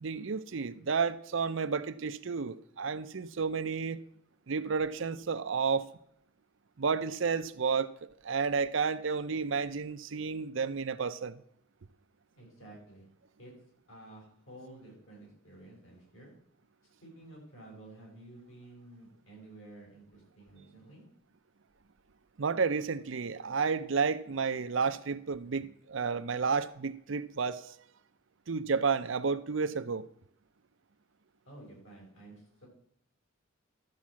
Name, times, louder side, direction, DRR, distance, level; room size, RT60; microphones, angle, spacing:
voice 1, 0.0-4.0 4.5-5.9 6.8-7.9 8.2-11.4 22.4-27.8 28.5-30.1, right 5 dB, 65° right, 0.6 m, -31 dB
voice 2, 12.3-13.0 13.4-13.5 13.9-16.3 17.0-21.0 31.5-32.7, right 1 dB, 70° left, 5.6 m, -52 dB
13.0 x 4.7 x 7.4 m
head